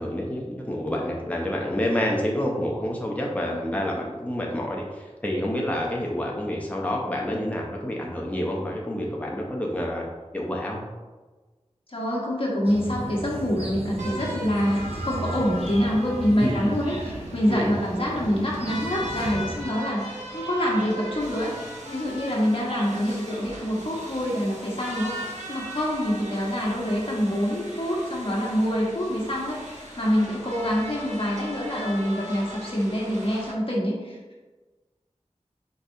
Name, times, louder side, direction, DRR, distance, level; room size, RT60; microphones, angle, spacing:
voice 1, 0.0-10.1 10.3-10.8 16.4-16.6 17.5-17.7, left 1 dB, 10° left, -2 dB, 0.7 m, -28 dB
voice 2, 3.5-4.0 11.9-34.2, equal, 50° left, -5 dB, 1.3 m, -26 dB
sound 1, 12.6-19.6, right 1 dB, 55° right, 0.7 m, -35 dB
sound 2, 14.0-33.5, right 1 dB, 85° right, 0.9 m, -39 dB
4.6 x 4.0 x 2.7 m, 1.3 s
wide cardioid pair, 55°, 12 cm